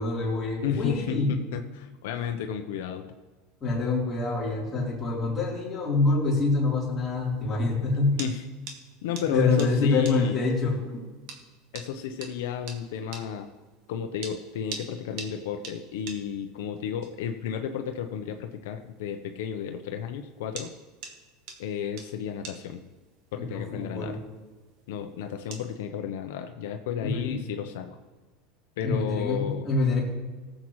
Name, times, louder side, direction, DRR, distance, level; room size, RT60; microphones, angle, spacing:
voice 1, 0.0-1.4 3.6-8.2 9.3-11.0 23.4-24.2 27.0-27.4 28.8-30.0, left 3 dB, 20° left, -6 dB, 3.5 m, -26 dB
voice 2, 0.6-3.1 8.2-8.4 9.0-10.4 11.7-13.5 13.9-20.7 21.6-22.8 23.3-24.2 24.9-27.9 28.8-29.7, left 8 dB, 80° left, 5 dB, 0.8 m, -32 dB
sound 1, 7.0-25.8, right 5 dB, 50° right, 1.8 m, -47 dB
18.5 x 7.7 x 3.2 m, 1.4 s
supercardioid pair, 165°, 0 cm